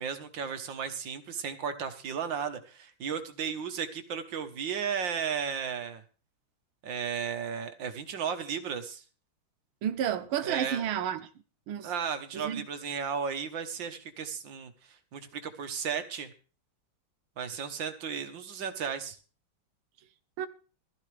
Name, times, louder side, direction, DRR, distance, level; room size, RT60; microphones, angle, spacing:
voice 1, 0.0-6.0 6.8-9.0 10.4-10.9 11.8-14.7 15.1-16.3 17.4-19.2, right 7 dB, 65° right, 1.9 m, -34 dB
voice 2, 9.8-11.2 11.7-11.9 12.3-12.6 20.4-20.5, right 9 dB, 80° right, 1.8 m, -31 dB
16.0 x 13.5 x 3.4 m
omnidirectional pair, 2.3 m